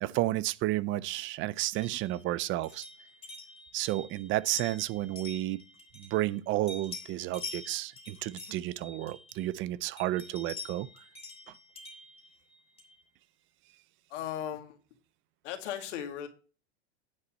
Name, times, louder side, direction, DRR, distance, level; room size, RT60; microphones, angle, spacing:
voice 1, 0.0-2.9 3.7-5.6 6.0-10.9, right 16 dB, 35° right, 0.4 m, -31 dB
sound 1, 1.7-6.4 6.7-9.6 10.0-13.0, left 3 dB, 15° left, 2.6 m, -46 dB
voice 2, 14.1-14.8 15.4-16.3, left 10 dB, 80° left, 2.1 m, -36 dB
9.8 x 4.2 x 7.1 m
supercardioid pair, 120°, 36 cm